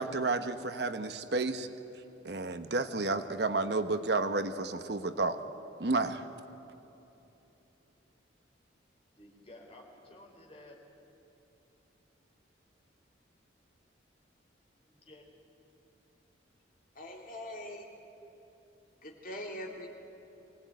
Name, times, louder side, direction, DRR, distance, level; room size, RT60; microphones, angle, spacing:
voice 1, 0.0-1.7 2.2-5.4 5.8-6.3, right 3 dB, 60° right, 10 dB, 1.0 m, -31 dB
voice 2, 9.2-10.8 14.8-15.3, left 1 dB, 30° left, 0 dB, 3.9 m, -53 dB
voice 3, 16.9-17.9 19.0-19.9, left 1 dB, 45° left, 1 dB, 2.9 m, -42 dB
24.0 x 18.0 x 9.4 m, 3.0 s
head